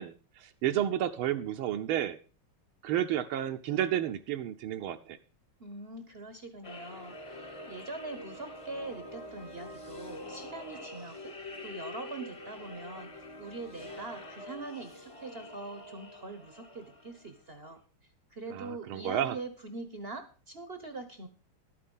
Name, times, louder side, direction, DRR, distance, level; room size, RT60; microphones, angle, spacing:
voice 1, 0.0-2.2 2.8-5.2 18.5-19.4, right 11 dB, 75° right, 6 dB, 1.5 m, -31 dB
voice 2, 5.6-11.3 11.6-13.1 13.4-17.8 18.3-21.3, right 3 dB, 45° right, 9 dB, 0.8 m, -43 dB
sound 1, 6.6-17.4, left 1 dB, 25° left, 0.8 m, -45 dB
12.0 x 8.6 x 5.3 m, 0.37 s
omnidirectional pair, 2.4 m